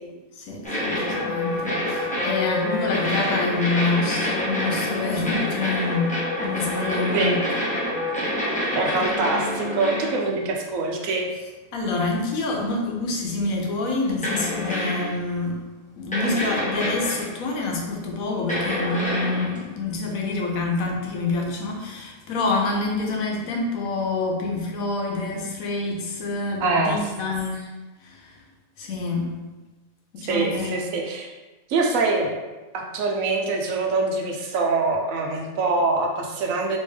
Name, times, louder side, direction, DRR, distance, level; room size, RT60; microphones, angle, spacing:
voice 1, 0.4-7.4 11.7-15.6 16.0-27.7 28.0-28.3 28.8-29.3 30.2-30.9, left 3 dB, 80° left, 0 dB, 1.1 m, -27 dB
sound 1, 0.6-10.3 12.7-12.8 14.2-15.2 16.1-17.4 18.5-19.6, left 1 dB, 5° left, 0.8 m, -27 dB
voice 2, 8.7-11.3 26.6-27.1 30.3-31.3 31.7-32.3 32.7-36.8, right 3 dB, 75° right, 1 dB, 1.0 m, -24 dB
3.3 x 3.0 x 3.2 m, 1.2 s
omnidirectional pair, 1.5 m